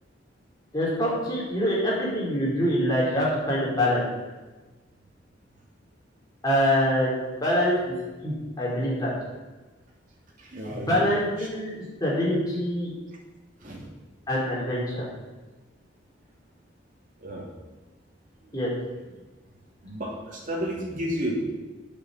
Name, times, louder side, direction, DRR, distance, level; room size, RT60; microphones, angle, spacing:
voice 1, 0.7-4.1 6.4-7.9 8.2-9.1 10.7-12.9 14.3-15.1 18.5-18.7, equal, 20° left, -6 dB, 4.1 m, -25 dB
voice 2, 10.5-11.1 13.6-13.8 17.2-17.5 19.8-21.3, equal, 45° right, -2 dB, 2.5 m, -32 dB
9.4 x 7.1 x 6.8 m, 1.2 s
head